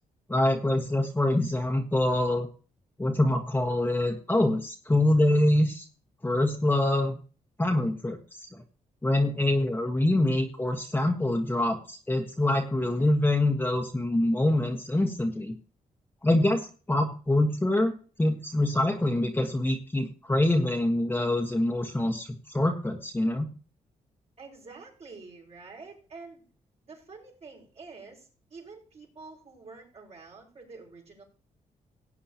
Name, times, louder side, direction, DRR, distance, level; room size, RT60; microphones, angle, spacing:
voice 1, 0.3-2.5 3.0-5.9 6.2-7.2 7.6-8.2 9.0-15.5 16.2-17.9 18.2-23.5, left 1 dB, 15° left, 3 dB, 1.4 m, -25 dB
voice 2, 24.4-26.4 26.8-31.2, right 4 dB, 50° right, -1 dB, 5.4 m, -47 dB
17.5 x 8.6 x 2.9 m, 0.37 s
cardioid pair, 85°, 14 cm